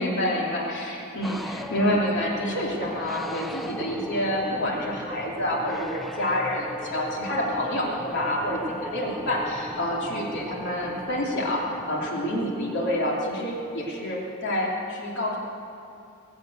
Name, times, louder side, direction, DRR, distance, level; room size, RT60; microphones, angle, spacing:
voice 1, 0.0-15.4, left 1 dB, 60° left, -3 dB, 2.9 m, -28 dB
sound 1, 1.2-14.2, equal, ahead, 0.5 m, -38 dB
21.0 x 7.8 x 8.0 m, 2.6 s
head